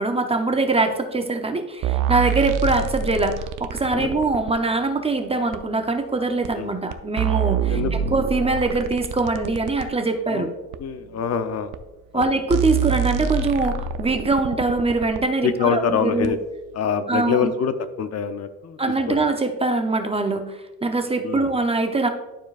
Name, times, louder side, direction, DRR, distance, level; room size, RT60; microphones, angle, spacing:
voice 1, 0.0-10.5 12.1-16.3 17.1-17.5 18.8-22.1, right 3 dB, 15° right, 6 dB, 0.6 m, -23 dB
sound 1, 1.8-4.6 5.5-5.6 6.4-6.5 6.9-9.9 10.7-10.8 11.7-11.8 12.2-12.3 12.5-15.2 16.2-16.3, right 8 dB, 60° right, 0.6 m, -26 dB
voice 2, 10.8-11.7 12.1-12.3 15.4-16.4 16.7-18.8 19.1-19.3 21.2-21.5, left 6 dB, 45° left, 10 dB, 0.6 m, -25 dB
11.5 x 4.5 x 2.4 m, 1.1 s
cardioid pair, 110°, 36 cm